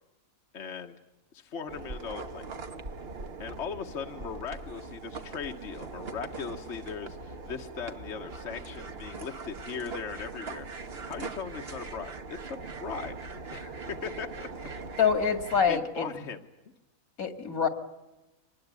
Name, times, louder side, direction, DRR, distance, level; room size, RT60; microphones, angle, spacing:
voice 1, 0.5-1.0 1.3-2.4 3.4-13.1 13.5-14.5 15.7-16.4, left 6 dB, 55° left, 4 dB, 1.5 m, -39 dB
sound 1, 1.7-15.8, right 3 dB, 45° right, 1.5 m, -41 dB
voice 2, 15.0-16.1 17.2-17.7, left 6 dB, 75° left, 9 dB, 2.5 m, -25 dB
25.0 x 20.0 x 9.6 m, 1.0 s
omnidirectional pair, 1.5 m